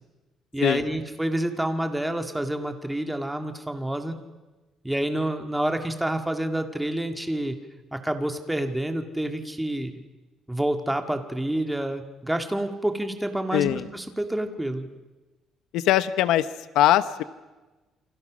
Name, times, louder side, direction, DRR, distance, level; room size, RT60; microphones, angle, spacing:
voice 1, 0.5-4.1 4.8-7.6 7.9-10.0 10.5-14.9, right 1 dB, 5° right, 6 dB, 2.0 m, -28 dB
voice 2, 13.5-13.8 15.7-16.5 16.7-17.2, left 13 dB, 85° left, 13 dB, 0.9 m, -21 dB
29.0 x 25.5 x 6.3 m, 1.2 s
cardioid pair, 155°, 0 cm